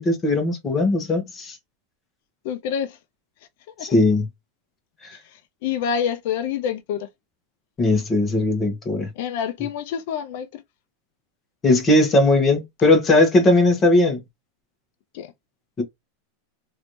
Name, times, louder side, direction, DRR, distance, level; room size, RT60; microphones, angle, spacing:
voice 1, 0.0-1.6 3.8-4.3 5.0-5.2 7.8-9.1 11.6-14.2 15.8-15.9, left 2 dB, 25° left, 1.2 m, -18 dB
voice 2, 2.4-3.0 3.7-3.9 5.1-7.1 9.2-10.6 15.1-15.3, left 8 dB, 65° left, 0.5 m, -27 dB
3.1 x 2.6 x 3.0 m
supercardioid pair, 135°, 0 cm